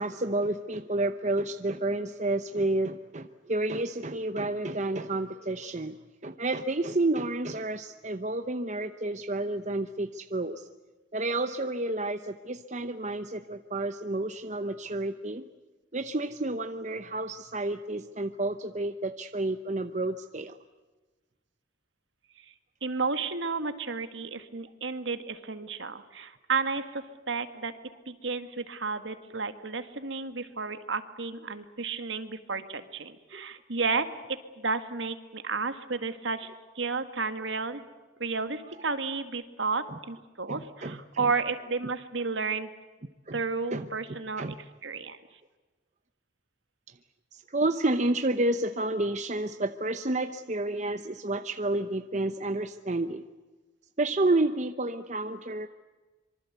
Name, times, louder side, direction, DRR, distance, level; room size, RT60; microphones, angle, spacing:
voice 1, 0.0-5.9 6.2-10.7 11.1-15.4 15.9-20.6 33.3-33.5 37.4-37.5 38.8-38.9 39.9-40.0 40.5-41.3 43.3-43.4 43.7-43.9 44.4-44.6 47.3-53.2 54.0-55.7, right 2 dB, 35° right, 9 dB, 0.8 m, -30 dB
voice 2, 22.8-27.7 28.1-34.1 34.6-36.5 36.8-37.8 38.2-42.7 43.3-44.4 44.8-45.2, right 4 dB, 65° right, 10 dB, 2.0 m, -32 dB
26.0 x 24.0 x 8.2 m, 1.2 s
head